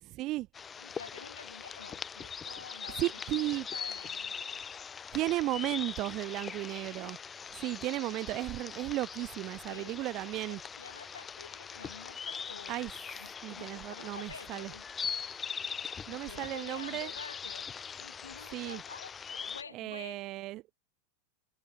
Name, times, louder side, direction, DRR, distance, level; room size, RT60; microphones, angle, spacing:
voice 1, 0.0-0.5 3.0-3.7 5.1-7.2 7.5-10.6 12.7-12.9 13.4-14.7 16.1-17.1 18.5-18.8 19.7-20.6, right 17 dB, 35° right, 0.6 m, -34 dB
sound 1, 0.5-19.6, left 6 dB, 20° left, 1.2 m, -42 dB
voice 2, 0.8-4.4 9.7-9.9 10.2-12.9 13.1-14.8 16.0-17.7 18.0-20.2, left 6 dB, 75° left, 3.3 m, -49 dB
figure-of-eight pair, 90°, 0 cm